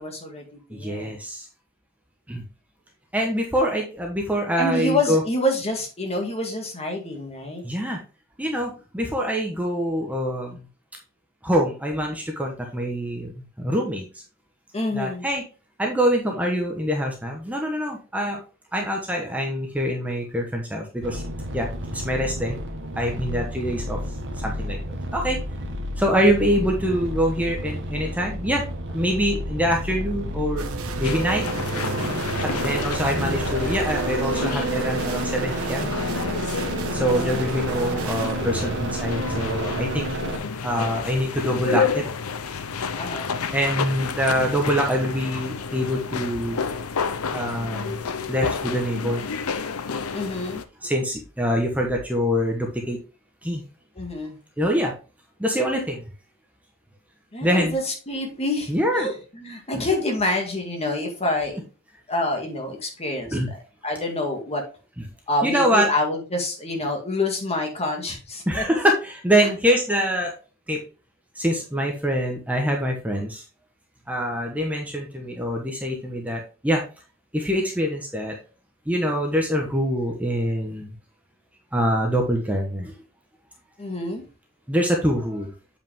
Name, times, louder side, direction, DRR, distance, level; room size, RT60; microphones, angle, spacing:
voice 1, 0.0-1.1 4.6-7.6 14.7-15.3 32.5-32.8 42.9-43.3 50.1-50.6 54.0-54.4 57.3-61.6 62.1-64.6 65.3-68.7 69.4-69.5 83.8-84.2, left 2 dB, 30° left, 2 dB, 2.0 m, -27 dB
voice 2, 0.7-1.5 2.3-2.4 3.1-5.2 7.6-8.0 8.4-10.6 11.4-14.2 14.9-15.4 15.8-18.4 18.7-21.2 21.5-21.7 21.9-22.6 23.0-24.0 24.4-25.4 26.0-30.7 31.0-31.4 32.4-36.0 36.9-40.1 40.6-42.1 43.5-46.6 47.3-48.0 48.3-49.3 50.8-53.0 53.4-53.6 54.6-54.9 55.4-56.0 57.4-57.8 58.7-59.1 59.7-59.8 63.3-63.5 65.4-65.9 68.5-70.3 70.7-70.8 71.3-73.4 74.1-76.8 77.3-78.4 78.9-80.9 81.7-82.9 84.7-85.5, equal, 5° right, 1 dB, 1.2 m, -24 dB
sound 1, 21.0-40.4, right 1 dB, 60° right, 1.4 m, -30 dB
sound 2, 30.6-38.3, right 6 dB, 75° right, 1.1 m, -34 dB
sound 3, 31.0-50.6, left 5 dB, 80° left, 0.7 m, -30 dB
8.1 x 5.1 x 3.6 m, 0.33 s
head